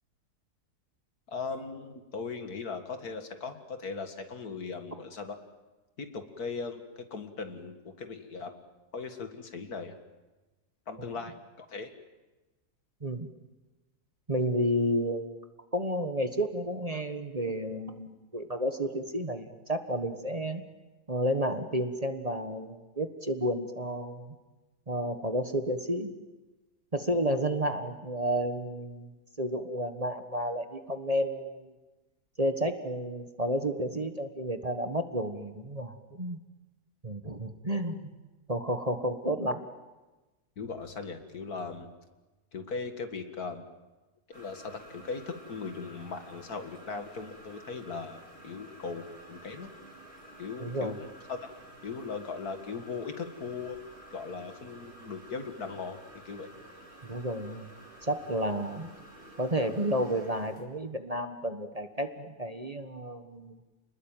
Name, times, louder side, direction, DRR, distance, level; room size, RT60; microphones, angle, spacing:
voice 1, 1.3-5.4 6.0-8.6 8.9-10.0 10.9-11.9 40.6-41.9 42.5-43.7 44.3-49.7 50.4-51.4 51.8-53.8 54.1-56.0 56.3-56.5, left 4 dB, 75° left, 7 dB, 2.4 m, -39 dB
voice 2, 14.3-15.3 15.7-20.6 21.1-24.3 24.9-26.2 26.9-29.1 29.4-31.7 32.4-36.4 37.0-38.0 38.5-39.6 50.6-51.0 57.0-57.7 58.0-58.9 59.4-63.6, equal, 25° right, 7 dB, 1.4 m, -31 dB
sound 1, 44.3-60.6, right 1 dB, 45° right, 5.7 m, -51 dB
30.0 x 20.5 x 9.1 m, 1.2 s
omnidirectional pair, 1.6 m